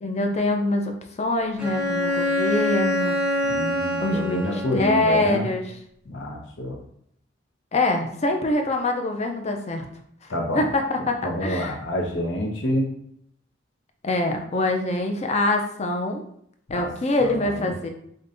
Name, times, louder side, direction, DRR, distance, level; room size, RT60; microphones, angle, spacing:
voice 1, 0.0-3.2 4.0-5.6 7.7-9.9 10.5-11.7 14.0-16.2 16.7-17.9, left 2 dB, 35° left, 4 dB, 0.4 m, -24 dB
Bowed string instrument, 1.6-5.1, left 1 dB, 5° right, 0.7 m, -25 dB
voice 2, 3.4-5.5 6.1-6.8 10.3-10.7 11.2-12.9 16.7-16.9 17.2-17.7, left 1 dB, 80° left, 1 dB, 0.8 m, -28 dB
5.1 x 2.2 x 2.5 m, 0.68 s
head